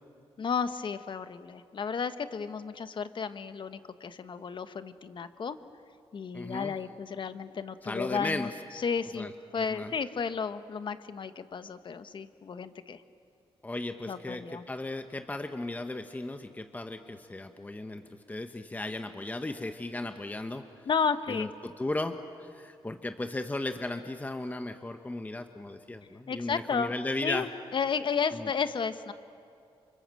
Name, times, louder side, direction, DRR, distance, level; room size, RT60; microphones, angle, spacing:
voice 1, 0.4-5.6 6.1-8.5 8.7-13.0 14.1-14.6 20.9-21.5 26.3-26.9 27.2-29.1, left 6 dB, 50° left, 11 dB, 1.2 m, -33 dB
voice 2, 6.3-6.7 7.8-8.5 9.1-9.9 13.6-20.7 21.3-27.5 28.3-28.5, left 2 dB, 15° left, 7 dB, 1.1 m, -36 dB
29.0 x 25.5 x 7.7 m, 2.5 s
cardioid pair, 85°, 10 cm